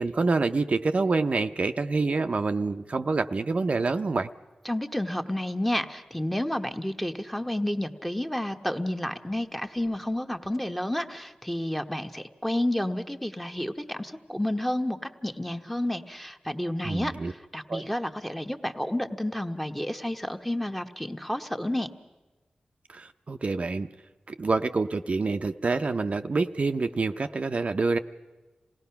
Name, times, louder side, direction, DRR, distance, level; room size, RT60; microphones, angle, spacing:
voice 1, 0.0-4.3 16.8-17.3 17.7-17.8 22.9-23.9 24.3-28.0, right 3 dB, 50° right, 8 dB, 0.6 m, -27 dB
voice 2, 4.6-21.9, left 1 dB, 5° left, 6 dB, 1.1 m, -30 dB
27.0 x 18.0 x 5.8 m, 1.2 s
wide cardioid pair, 70°, 3 cm